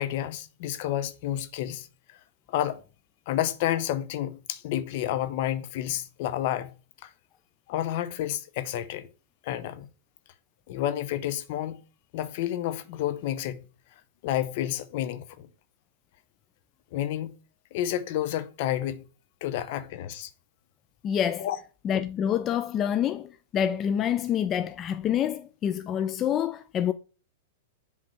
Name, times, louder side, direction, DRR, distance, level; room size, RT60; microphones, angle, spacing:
voice 1, 0.0-2.2 2.5-2.8 3.3-6.8 7.0-7.1 7.7-9.1 9.4-9.9 10.7-11.8 12.1-13.7 14.2-15.5 16.9-17.4 17.7-19.0 19.4-20.3 21.4-21.6, left 12 dB, 55° left, 0.7 m, -30 dB
voice 2, 21.0-21.5 21.8-26.9, left 9 dB, 30° left, 0.3 m, -27 dB
7.6 x 3.6 x 4.3 m
hypercardioid pair, 125°, 0 cm